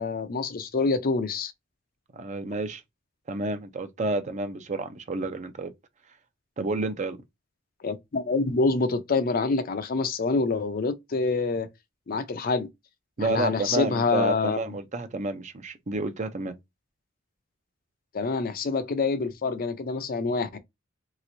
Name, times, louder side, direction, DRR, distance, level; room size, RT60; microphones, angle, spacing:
voice 1, 0.0-1.5 7.8-11.7 12.1-12.7 13.2-14.6 18.1-20.6, left 3 dB, 50° left, 0.5 m, -26 dB
voice 2, 2.1-2.8 3.3-5.7 6.6-7.2 13.2-16.5, right 2 dB, 40° right, 0.6 m, -30 dB
3.3 x 3.0 x 2.6 m
head